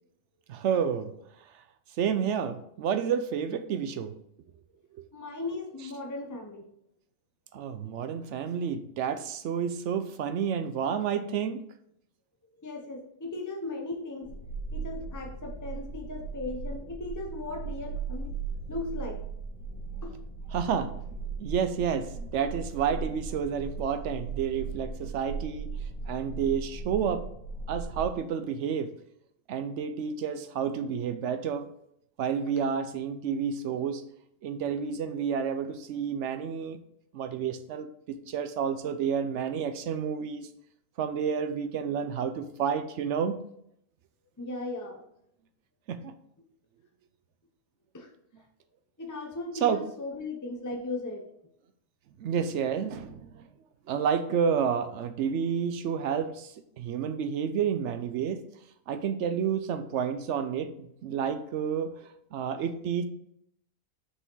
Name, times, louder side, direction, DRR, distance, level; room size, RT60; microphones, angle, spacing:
voice 1, 0.5-1.1 2.0-4.1 4.9-5.1 7.5-11.6 20.5-25.7 26.1-27.2 27.7-28.9 29.5-31.7 32.2-34.0 34.4-36.8 37.1-40.5 41.0-43.4 45.9-46.1 49.6-49.8 52.2-53.5 53.9-58.4 58.9-63.1, right 7 dB, 65° right, 10 dB, 0.8 m, -30 dB
voice 2, 5.1-6.7 12.6-14.4 14.7-18.3 18.7-19.2 20.0-20.2 44.4-45.0 47.9-48.1 49.0-51.3 62.6-62.7, left 2 dB, 25° left, 2 dB, 0.4 m, -37 dB
sound 1, 14.2-28.0, right 4 dB, 5° left, 1.5 m, -38 dB
6.6 x 5.1 x 3.8 m, 0.74 s
omnidirectional pair, 1.5 m